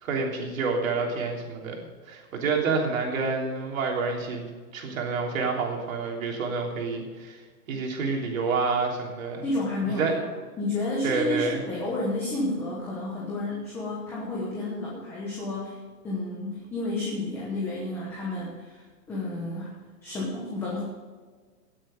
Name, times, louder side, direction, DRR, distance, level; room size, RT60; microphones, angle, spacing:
voice 1, 0.0-1.8 2.1-7.4 7.7-9.5 9.9-10.1 11.0-11.6, right 4 dB, 55° right, 0 dB, 3.4 m, -28 dB
voice 2, 9.4-10.3 10.6-15.8 16.0-19.8 20.0-20.8, left 2 dB, 5° left, -5 dB, 1.0 m, -31 dB
18.0 x 7.5 x 5.2 m, 1.5 s
hypercardioid pair, 175°, 48 cm